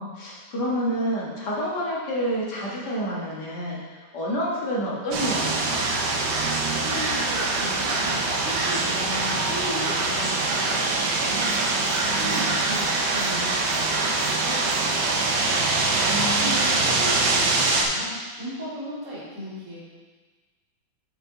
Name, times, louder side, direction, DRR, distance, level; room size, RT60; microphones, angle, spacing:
voice 1, 0.0-5.8 16.1-16.6, equal, 55° left, -5 dB, 2.3 m, -28 dB
sound 1, 5.1-17.8, right 3 dB, 70° right, 1.7 m, -24 dB
voice 2, 6.6-11.5 12.0-15.3 16.0-19.8, equal, 40° right, -9 dB, 2.8 m, -36 dB
7.3 x 7.2 x 3.9 m, 1.4 s
omnidirectional pair, 2.2 m